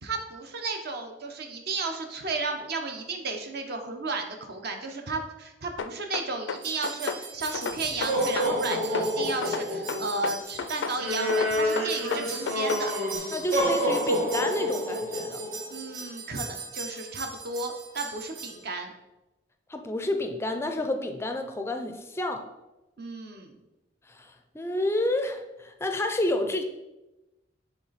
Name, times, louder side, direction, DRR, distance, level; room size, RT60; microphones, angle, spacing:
voice 1, 0.0-12.9 15.7-18.9 23.0-23.6, right 3 dB, 60° right, 4 dB, 0.8 m, -33 dB
sound 1, 5.8-7.2 7.5-9.1 9.4-11.0 11.3-12.9, left 5 dB, 80° left, 0.4 m, -32 dB
sound 2, 6.6-18.5, equal, 75° right, 1.3 m, -30 dB
voice 2, 13.3-15.4 19.7-22.5 24.1-26.6, left 1 dB, 15° left, 6 dB, 0.4 m, -30 dB
7.1 x 3.3 x 4.1 m, 1.0 s
head